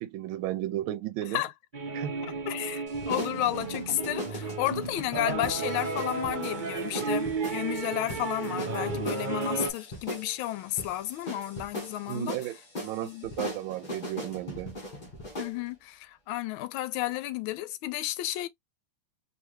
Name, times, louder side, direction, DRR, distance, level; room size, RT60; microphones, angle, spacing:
voice 1, 0.0-1.4 1.9-2.4 12.1-14.8, right 13 dB, 75° right, 1.4 m, -34 dB
sound 1, 1.7-9.7, right 4 dB, 60° right, 0.5 m, -33 dB
voice 2, 2.5-12.4 13.0-13.5 15.4-18.5, left 14 dB, 80° left, 1.4 m, -32 dB
sound 2, 2.9-15.6, left 1 dB, 25° left, 1.2 m, -40 dB
3.3 x 3.3 x 3.1 m
omnidirectional pair, 2.3 m